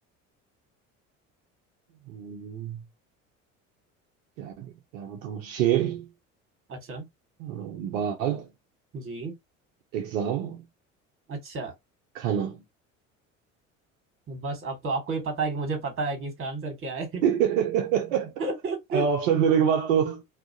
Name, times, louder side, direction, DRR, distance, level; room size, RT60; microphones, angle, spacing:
voice 1, 2.1-2.8 4.4-6.1 7.4-8.5 9.9-10.6 12.1-12.6 17.2-18.3 18.9-20.2, right 8 dB, 75° right, 0.6 m, -26 dB
voice 2, 6.7-7.1 8.9-9.3 11.3-11.7 14.3-17.2 18.4-19.0, right 3 dB, 35° right, 1.3 m, -31 dB
2.3 x 2.0 x 2.6 m
hypercardioid pair, 65°, 39 cm